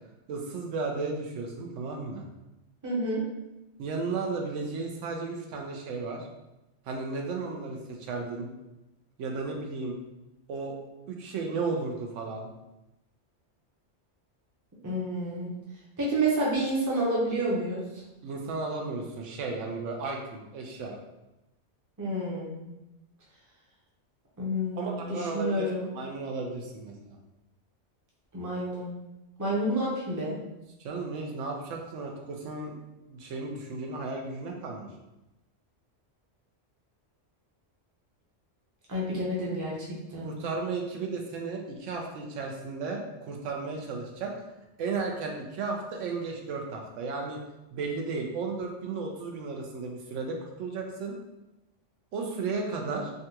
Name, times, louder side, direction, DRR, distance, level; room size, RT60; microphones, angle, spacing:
voice 1, 0.3-2.2 3.8-6.3 6.9-8.5 9.2-10.0 10.5-10.8 11.1-12.5 18.2-21.0 24.8-27.2 30.8-32.8 33.1-34.9 40.2-44.4 44.8-47.4 47.7-51.1 52.1-53.1, right 3 dB, 80° right, 1 dB, 0.9 m, -34 dB
voice 2, 2.8-3.2 14.8-15.5 16.0-17.8 22.0-22.5 24.4-25.9 28.3-28.9 29.4-30.4 38.9-40.3, right 1 dB, 20° right, -5 dB, 0.6 m, -29 dB
3.7 x 2.2 x 2.8 m, 0.96 s
omnidirectional pair, 1.2 m